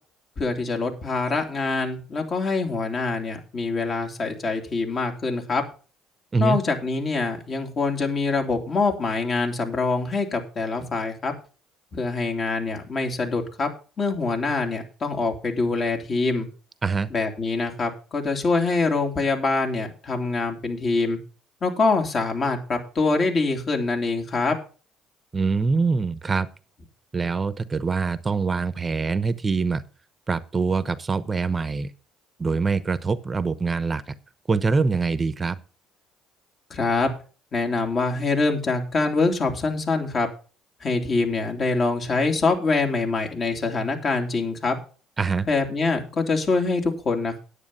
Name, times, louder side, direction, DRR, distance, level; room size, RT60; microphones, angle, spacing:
voice 1, 0.4-5.6 6.4-11.3 11.9-13.7 14.0-16.5 17.1-21.2 21.6-24.6 36.7-37.1 37.5-40.3 40.8-44.8 45.5-47.4, left 3 dB, 45° left, 3 dB, 2.9 m, -24 dB
voice 2, 25.3-26.5 27.1-29.8 30.3-31.9 32.4-34.0 34.5-35.6 45.2-45.5, right 4 dB, 30° right, 15 dB, 0.8 m, -24 dB
9.8 x 8.6 x 5.5 m, 0.37 s
hypercardioid pair, 65°, 0 cm